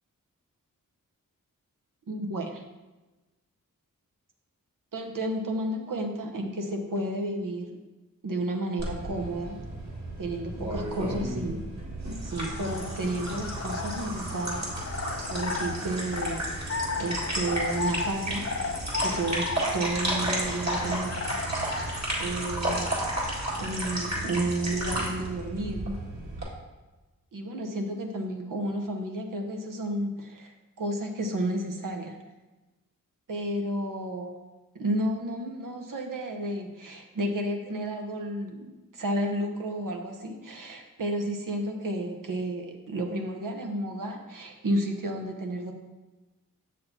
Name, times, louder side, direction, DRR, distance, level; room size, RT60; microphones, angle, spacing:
voice 1, 2.1-2.6 4.9-7.8 8.2-9.6 10.2-11.6 12.2-14.7 15.3-16.5 17.0-18.5 19.0-21.2 22.2-22.9 23.6-26.0 27.3-30.5 30.8-32.2 33.3-34.3 34.7-45.7, right 1 dB, 65° right, 3 dB, 1.0 m, -32 dB
sound 1, 8.8-26.4, right 1 dB, 50° right, 2.2 m, -32 dB
sound 2, 12.3-22.1, left 5 dB, 45° left, 0.6 m, -35 dB
6.8 x 6.5 x 2.8 m, 1.1 s
cardioid pair, 45°, 35 cm